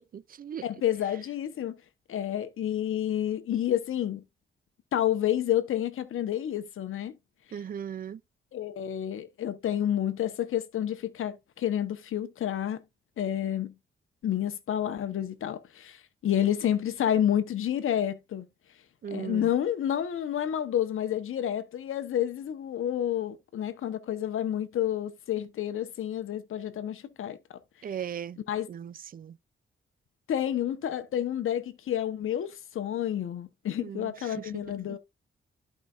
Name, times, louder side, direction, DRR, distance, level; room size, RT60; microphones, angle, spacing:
voice 1, 0.0-0.6 7.5-8.2 19.0-19.5 27.8-28.4 28.7-29.4 33.8-34.6 34.9-35.0, right 8 dB, 45° right, 0.4 m, -38 dB
voice 2, 0.6-1.8 2.1-4.2 4.9-7.1 8.5-12.8 13.2-13.7 14.2-18.5 19.1-27.6 28.5-28.7 30.3-35.0, left 10 dB, 85° left, 1.1 m, -29 dB
13.5 x 5.1 x 2.5 m
cardioid pair, 105°, 21 cm